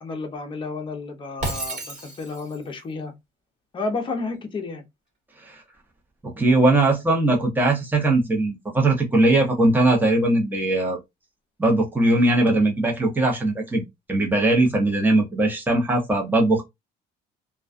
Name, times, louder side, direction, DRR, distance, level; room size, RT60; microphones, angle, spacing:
voice 1, 0.0-3.1 3.7-4.8, left 3 dB, 30° left, 0.7 m, -31 dB
Shatter, 1.4-2.6, right 2 dB, 45° right, 1.2 m, -31 dB
voice 2, 6.2-11.0 11.6-13.8 14.1-16.6, right 2 dB, 10° right, 0.8 m, -20 dB
2.3 x 2.3 x 2.5 m
cardioid pair, 110°, 17 cm